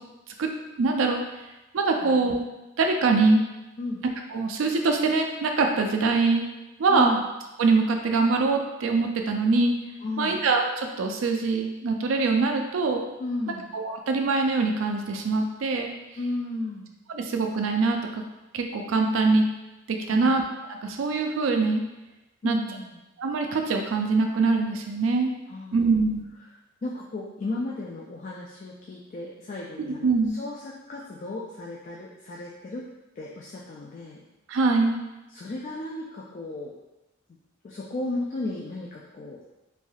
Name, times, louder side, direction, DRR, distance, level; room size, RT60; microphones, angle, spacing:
voice 1, 0.8-1.2 1.7-2.4 2.8-3.4 4.3-6.5 6.8-7.2 7.6-9.7 10.2-13.1 13.7-15.9 17.1-18.2 18.5-19.4 20.1-20.4 20.7-21.8 22.4-22.6 23.2-25.3 25.7-26.3 29.8-30.3 34.5-35.0, right 3 dB, 85° right, 3 dB, 0.4 m, -23 dB
voice 2, 6.9-7.2 10.0-10.4 13.2-13.7 16.2-16.9 20.1-20.4 22.4-23.0 25.5-25.8 26.8-32.8 33.2-34.2 35.3-36.7 37.6-39.4, left 2 dB, 40° left, -3 dB, 0.3 m, -34 dB
3.3 x 2.6 x 2.3 m, 1.0 s
head